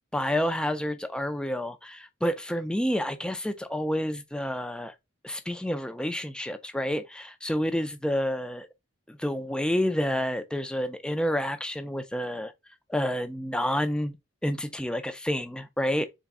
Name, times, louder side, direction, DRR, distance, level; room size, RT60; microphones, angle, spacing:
voice 1, 0.1-4.9 5.2-8.7 9.1-12.5 12.9-14.1 14.4-16.1, equal, 5° left, 0.4 m, -29 dB
4.1 x 3.4 x 3.5 m
head